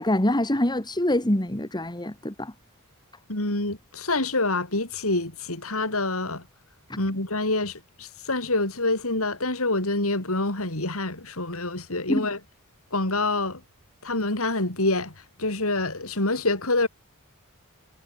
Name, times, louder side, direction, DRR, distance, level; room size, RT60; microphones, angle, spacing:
voice 1, 0.0-2.5 12.1-12.3, left 1 dB, 20° left, 2.2 m, -25 dB
voice 2, 3.3-6.4 7.0-12.4 12.9-13.6 14.0-15.1 15.4-16.9, left 2 dB, 65° left, 4.7 m, -26 dB
head